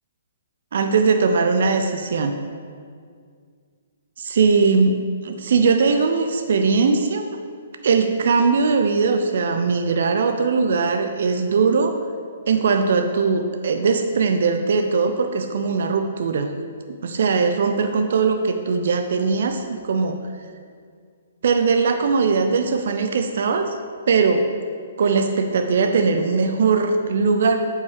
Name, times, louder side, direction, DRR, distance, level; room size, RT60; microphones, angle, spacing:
voice 1, 0.7-2.3 4.2-5.0 5.2-7.3 7.8-12.0 12.5-16.5 17.0-20.2 21.4-23.8 24.1-24.4 25.0-27.6, right 4 dB, 65° right, 6 dB, 0.6 m, -20 dB
7.9 x 5.6 x 5.1 m, 2.1 s
hypercardioid pair, 135°, 0 cm